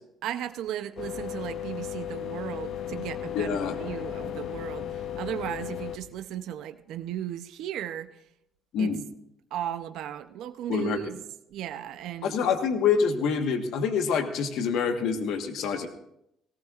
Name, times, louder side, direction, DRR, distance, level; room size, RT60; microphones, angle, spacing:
voice 1, 0.2-8.1 8.8-9.0 9.5-11.2 11.5-12.4, right 11 dB, 65° right, 9 dB, 0.6 m, -36 dB
sound 1, 1.0-6.0, left 10 dB, 50° left, 0.8 m, -35 dB
voice 2, 3.3-3.8 8.7-9.0 10.7-11.0 12.2-15.9, left 6 dB, 65° left, 6 dB, 1.3 m, -26 dB
18.0 x 17.5 x 2.5 m, 0.79 s
cardioid pair, 170°, 0 cm